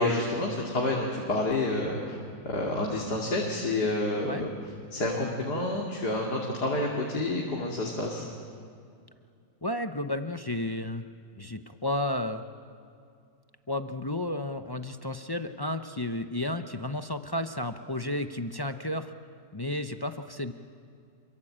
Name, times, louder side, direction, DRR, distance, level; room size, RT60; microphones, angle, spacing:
voice 1, 0.0-4.5 4.9-8.3, left 2 dB, 70° left, -2 dB, 3.3 m, -29 dB
voice 2, 9.6-11.0 11.4-12.4 13.7-19.1 19.5-20.5, left 1 dB, 25° left, 8 dB, 0.5 m, -32 dB
27.5 x 23.5 x 8.8 m, 2.4 s
omnidirectional pair, 1.8 m